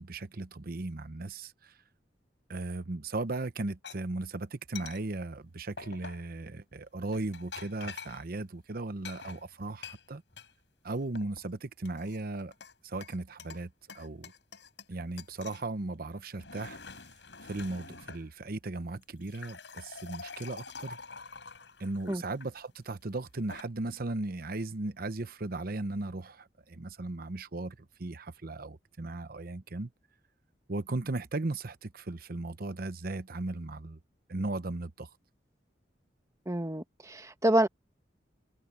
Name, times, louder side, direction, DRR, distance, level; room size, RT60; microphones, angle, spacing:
voice 1, 0.0-1.5 2.5-10.2 10.8-12.5 12.8-13.7 13.9-14.3 14.9-16.8 17.5-21.0 21.8-29.9 30.7-34.0 34.3-35.1, right 2 dB, 55° right, 0.9 m, -37 dB
sound 1, 3.8-4.0 4.8-5.0 5.8-6.3 7.1-8.2 9.0-10.5 10.9-11.5 11.9-12.7 13.0-13.6 13.9-14.9 15.2-15.6 16.2-18.3 19.0-22.5 23.3-23.6, left 5 dB, 80° left, 6.5 m, -46 dB
voice 2, 36.5-37.7, right 1 dB, 20° right, 1.4 m, -27 dB
head